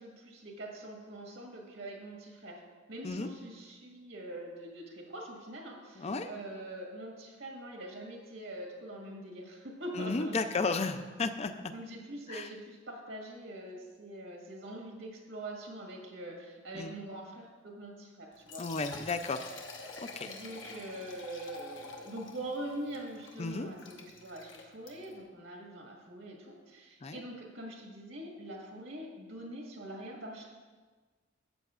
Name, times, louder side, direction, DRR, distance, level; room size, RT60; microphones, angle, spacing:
voice 1, 0.0-2.6 2.9-10.4 11.7-18.7 20.3-30.4, right 1 dB, 75° right, -1 dB, 1.8 m, -43 dB
voice 2, 6.0-6.3 9.9-11.7 12.3-12.5 16.7-17.0 18.6-19.5 20.0-20.3 23.4-23.7 27.0-27.2, left 3 dB, 35° left, 9 dB, 0.4 m, -33 dB
Liquid, 18.3-25.2, left 3 dB, 70° left, 1.1 m, -48 dB
13.0 x 8.0 x 2.5 m, 1.4 s
head